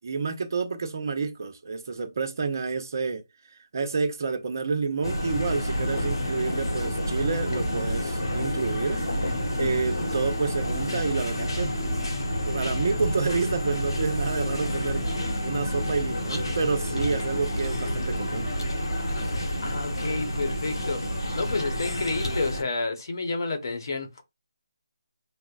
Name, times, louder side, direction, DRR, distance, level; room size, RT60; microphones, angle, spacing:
voice 1, 0.0-3.2 3.7-9.0 9.6-11.8 12.4-15.0 15.4-18.5, right 4 dB, 50° right, 0.7 m, -29 dB
sound 1, 5.0-22.6, equal, 90° left, 1.2 m, -29 dB
voice 2, 19.6-24.2, left 3 dB, 55° left, 1.0 m, -30 dB
5.2 x 2.1 x 2.3 m
figure-of-eight pair, 165°, 2 cm